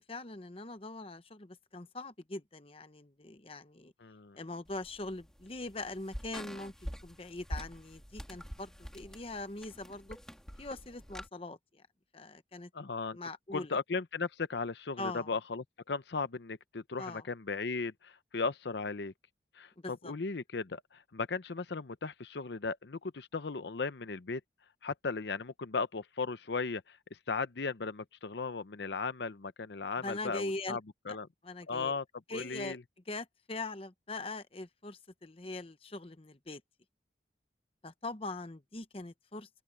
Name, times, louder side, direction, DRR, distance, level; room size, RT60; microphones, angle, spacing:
voice 1, 0.1-3.9 4.3-10.2 10.6-11.8 12.1-12.7 13.1-13.8 15.0-15.3 17.0-17.2 19.8-20.1 30.0-30.8 31.4-32.0 32.3-32.8 33.1-36.6 37.8-39.6, left 2 dB, 30° left, 0.9 m, -42 dB
voice 2, 4.0-4.4 12.7-13.2 13.5-19.1 19.5-24.4 24.8-27.0 27.3-30.8 31.1-31.3 31.7-32.0 32.3-32.8, left 4 dB, 75° left, 0.7 m, -36 dB
sound 1, 4.7-11.3, equal, 5° left, 2.3 m, -46 dB
open air
head